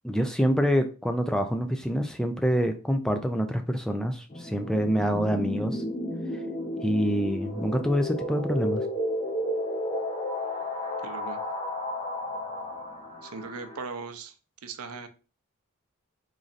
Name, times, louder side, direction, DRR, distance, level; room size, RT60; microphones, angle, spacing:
voice 1, 0.0-5.8 6.8-8.8, equal, 5° left, 7 dB, 0.3 m, -26 dB
sound 1, 4.3-13.8, left 1 dB, 25° left, 0.7 m, -33 dB
voice 2, 11.0-11.4 13.2-14.3 14.6-15.1, right 4 dB, 90° right, 8 dB, 0.6 m, -38 dB
3.8 x 3.1 x 2.5 m, 0.34 s
head